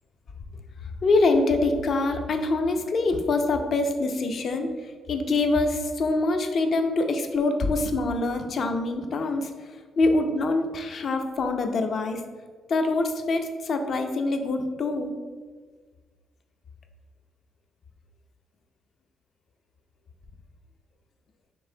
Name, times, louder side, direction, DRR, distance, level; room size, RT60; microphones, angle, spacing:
voice 1, 1.0-4.7 5.1-9.5 10.0-12.2 12.7-15.1, left 2 dB, 55° left, 6 dB, 0.5 m, -24 dB
5.4 x 3.3 x 2.7 m, 1.5 s
cardioid pair, 90°, 0 cm